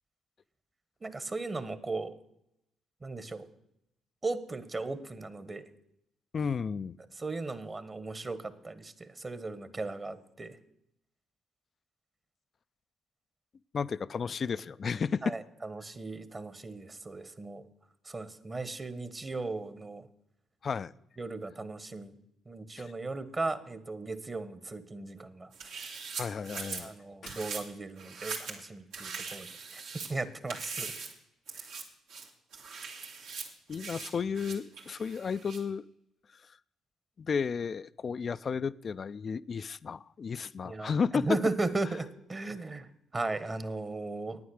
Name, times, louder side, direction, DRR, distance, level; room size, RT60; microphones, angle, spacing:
voice 1, 1.0-2.1 3.0-3.4 4.2-5.6 7.2-10.6 15.2-17.6 18.1-20.1 21.2-22.1 22.5-25.9 26.8-29.5 29.7-29.8 30.1-30.9 40.6-44.4, right 3 dB, 30° right, 13 dB, 1.2 m, -37 dB
voice 2, 6.3-7.0 13.7-15.3 20.6-20.9 22.8-22.9 26.2-26.9 27.2-27.4 33.7-35.8 37.2-41.3, left 6 dB, 45° left, 17 dB, 0.4 m, -33 dB
sound 1, 25.5-26.8 27.3-27.6 28.0-28.6 28.9-30.1 30.5-31.1 31.5-31.8 32.1-35.6, right 5 dB, 80° right, 2.2 m, -41 dB
9.5 x 9.3 x 6.4 m, 0.79 s
supercardioid pair, 55°, 0 cm